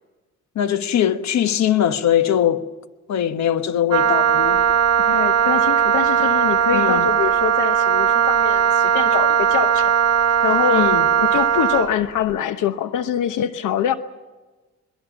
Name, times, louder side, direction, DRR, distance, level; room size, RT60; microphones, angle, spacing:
voice 1, 0.5-2.6 3.1-4.6 6.7-7.1 10.7-11.1, left 10 dB, 65° left, 1.2 m, -21 dB
Wind instrument woodwind instrument, 3.9-11.9, right 9 dB, 60° right, 1.1 m, -18 dB
voice 2, 5.0-9.9 10.4-10.9 11.2-13.9, left 9 dB, 85° left, 1.0 m, -24 dB
23.5 x 22.0 x 7.1 m
cardioid pair, 90°, 30 cm